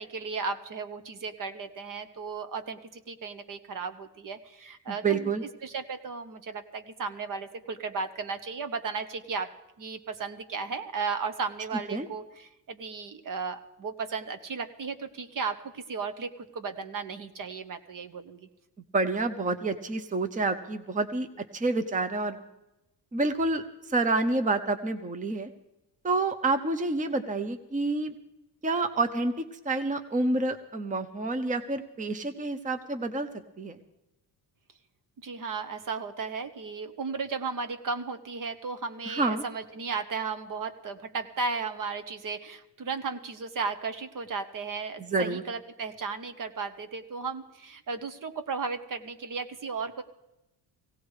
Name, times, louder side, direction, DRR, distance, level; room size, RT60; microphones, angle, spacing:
voice 1, 0.0-5.3 5.6-9.5 9.8-18.5 35.2-50.0, right 4 dB, 50° right, 9 dB, 1.2 m, -35 dB
voice 2, 4.9-5.4 11.9-12.1 18.9-21.3 21.5-22.4 23.1-25.5 26.0-28.1 28.6-29.3 29.6-33.3 33.6-33.8 39.1-39.4 45.1-45.4, right 3 dB, 20° right, 8 dB, 0.8 m, -28 dB
17.5 x 17.0 x 4.9 m, 0.93 s
cardioid pair, 110°, 41 cm